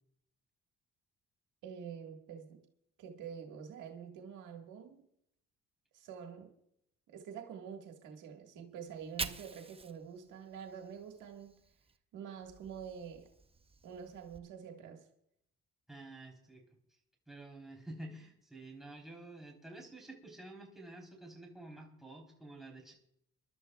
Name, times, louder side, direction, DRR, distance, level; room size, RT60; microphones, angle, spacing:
voice 1, 1.6-2.6 3.0-5.0 5.9-6.5 7.1-11.6 12.1-13.3 13.8-15.0, right 7 dB, 90° right, 1.7 m, -47 dB
Fire, 8.8-12.0 12.3-14.4, right 4 dB, 20° right, 0.7 m, -47 dB
voice 2, 15.9-16.6 17.3-22.9, right 2 dB, ahead, 3.7 m, -50 dB
27.0 x 12.0 x 2.3 m
cardioid pair, 90°, 30 cm